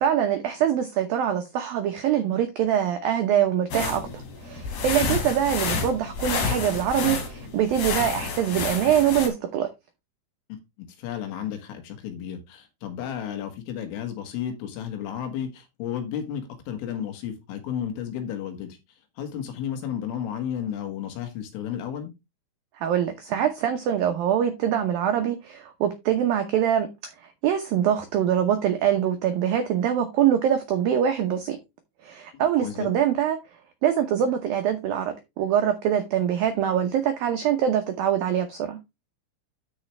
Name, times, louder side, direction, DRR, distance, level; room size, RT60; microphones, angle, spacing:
voice 1, 0.0-4.0 4.4-9.7 22.8-27.1 27.4-31.6 32.0-33.4 33.8-38.8, right 9 dB, 90° right, 2.0 m, -24 dB
sound 1, 3.7-9.3, left 5 dB, 55° left, 4.0 m, -29 dB
voice 2, 10.8-18.8 19.2-22.1 32.3-32.9, left 9 dB, 90° left, 4.3 m, -33 dB
12.5 x 5.0 x 3.2 m
omnidirectional pair, 5.6 m